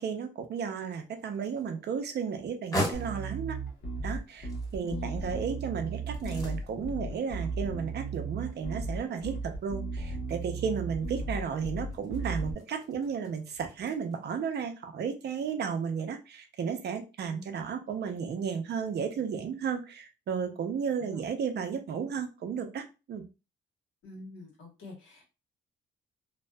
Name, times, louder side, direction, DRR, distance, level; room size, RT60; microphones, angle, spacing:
voice 1, 0.0-3.6 4.0-23.2, right 6 dB, 55° right, 6 dB, 0.6 m, -33 dB
sound 1, 0.9-14.2, equal, 15° left, 1.2 m, -42 dB
Bass guitar, 2.9-12.5, right 3 dB, 65° left, 0.9 m, -36 dB
voice 2, 24.0-25.2, left 3 dB, 80° left, -1 dB, 1.4 m, -45 dB
2.6 x 2.3 x 2.2 m, 0.29 s
cardioid pair, 90°, 20 cm